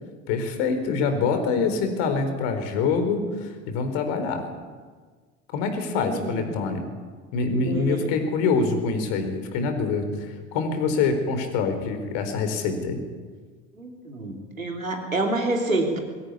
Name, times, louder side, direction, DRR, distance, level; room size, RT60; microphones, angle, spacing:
voice 1, 0.3-4.4 5.5-6.9 7.3-13.0, left 4 dB, 60° left, 7 dB, 4.5 m, -25 dB
voice 2, 5.8-6.6 7.6-8.1 13.8-16.0, right 2 dB, 90° right, 3 dB, 3.1 m, -28 dB
22.0 x 16.0 x 9.8 m, 1.5 s
figure-of-eight pair, 65°, 40 cm